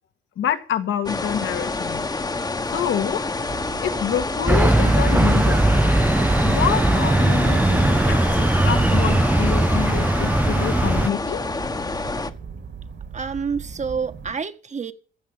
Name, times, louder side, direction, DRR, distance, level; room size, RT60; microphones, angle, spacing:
voice 1, 0.4-2.1 2.7-3.2 3.8-5.7 6.4-11.4, left 9 dB, 75° left, 1.9 m, -27 dB
sound 1, 1.1-12.3, left 3 dB, 20° left, 1.2 m, -28 dB
sound 2, 3.3-14.3, right 5 dB, 60° right, 3.0 m, -38 dB
sound 3, 4.5-11.1, right 2 dB, 10° right, 0.6 m, -19 dB
voice 2, 13.1-14.9, right 5 dB, 35° right, 1.5 m, -28 dB
15.0 x 7.2 x 9.0 m
cardioid pair, 90°, 20 cm